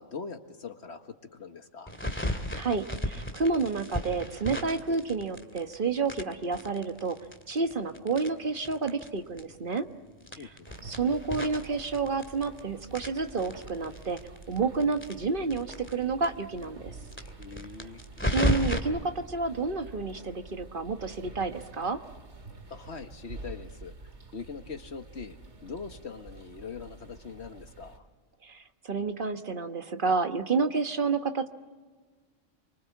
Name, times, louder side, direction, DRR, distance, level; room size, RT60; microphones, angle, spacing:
voice 1, 0.0-1.9 10.4-10.7 17.4-18.0 22.7-28.1, left 5 dB, 60° left, 7 dB, 1.8 m, -42 dB
sound 1, 1.9-5.7 6.1-9.1 9.4-9.5 9.7-9.8 10.2-12.6 12.9-15.9 16.2-16.3 16.6-16.7 17.1-18.8, left 1 dB, 10° left, 2.2 m, -33 dB
voice 2, 2.5-7.2 7.5-9.9 10.8-14.2 14.5-16.9 18.2-22.0 28.4-31.5, right 4 dB, 45° right, 7 dB, 1.4 m, -30 dB
sound 2, 10.7-28.0, right 3 dB, 65° right, 2.5 m, -48 dB
28.0 x 24.5 x 8.4 m, 1.5 s
omnidirectional pair, 1.3 m